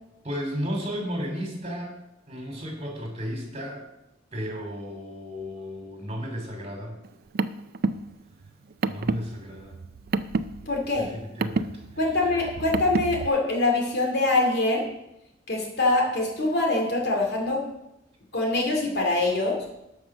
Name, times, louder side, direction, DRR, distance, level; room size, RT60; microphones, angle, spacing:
voice 1, 0.2-2.0 2.3-3.8 4.3-7.0 8.8-9.7 11.0-11.8, equal, 30° right, 1 dB, 3.0 m, -33 dB
Car, 7.0-13.3, right 4 dB, 50° right, 0.4 m, -30 dB
voice 2, 10.7-11.1 12.0-14.8 15.5-17.6 18.3-19.6, left 2 dB, 60° left, 1 dB, 2.4 m, -24 dB
12.0 x 5.5 x 6.0 m, 0.88 s
head